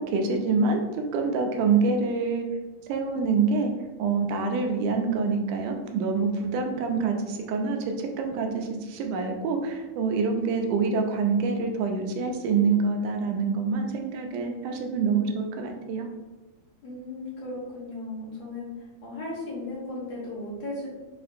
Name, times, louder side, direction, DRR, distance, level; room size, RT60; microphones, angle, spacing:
voice 1, 0.0-2.5 2.9-3.7 4.0-16.1, right 4 dB, 85° right, 3 dB, 2.1 m, -26 dB
voice 2, 16.8-18.7 19.0-20.9, left 2 dB, 65° left, -6 dB, 2.0 m, -36 dB
5.3 x 2.5 x 2.5 m, 1.2 s
omnidirectional pair, 3.6 m